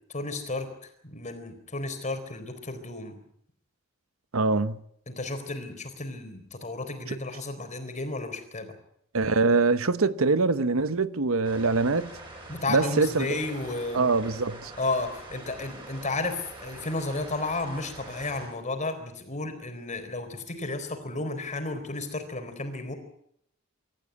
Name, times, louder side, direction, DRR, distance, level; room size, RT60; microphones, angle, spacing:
voice 1, 0.1-3.2 5.1-8.7 12.5-14.2 14.8-22.9, left 2 dB, 35° left, 4.0 m, -33 dB
voice 2, 4.3-4.8 7.1-7.2 9.1-12.1 12.7-13.3 13.9-14.7, right 3 dB, 75° right, 1.0 m, -24 dB
sound 1, 11.4-18.5, right 2 dB, 25° right, 7.5 m, -44 dB
25.0 x 14.0 x 9.8 m
head